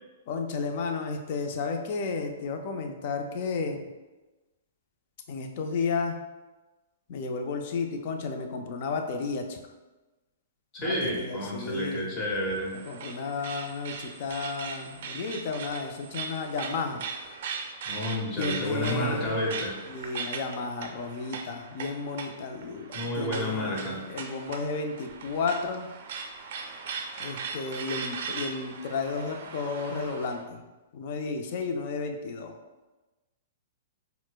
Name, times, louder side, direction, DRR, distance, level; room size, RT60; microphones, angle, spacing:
voice 1, 0.3-3.9 5.3-6.2 7.1-9.6 10.8-12.1 12.9-17.1 18.4-19.4 19.9-25.9 27.2-30.6 30.9-32.6, left 4 dB, 55° left, 4 dB, 0.4 m, -32 dB
voice 2, 10.7-12.7 17.9-19.8 22.9-24.0, left 1 dB, 30° left, -3 dB, 1.0 m, -30 dB
sound 1, 12.2-30.4, right 5 dB, 60° right, 0.4 m, -39 dB
4.2 x 2.1 x 2.3 m, 1.1 s
hypercardioid pair, 130°, 0 cm